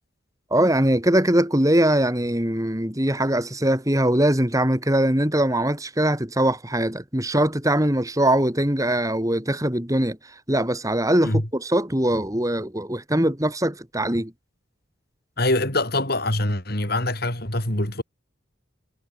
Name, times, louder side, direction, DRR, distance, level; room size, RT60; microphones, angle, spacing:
voice 1, 0.5-14.3, right 1 dB, 15° right, 2.7 m, -22 dB
voice 2, 15.4-18.0, left 1 dB, 50° left, 5.6 m, -24 dB
head